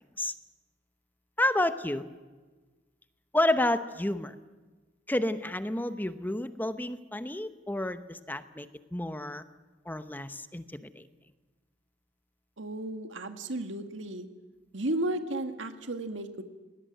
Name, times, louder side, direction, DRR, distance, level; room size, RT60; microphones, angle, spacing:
voice 1, 1.4-2.1 3.3-4.3 5.1-9.4 9.9-11.0, left 1 dB, 10° left, 11 dB, 0.9 m, -30 dB
voice 2, 12.6-14.3 14.7-16.4, right 1 dB, 90° right, 7 dB, 2.0 m, -33 dB
20.5 x 19.0 x 9.4 m, 1.3 s
head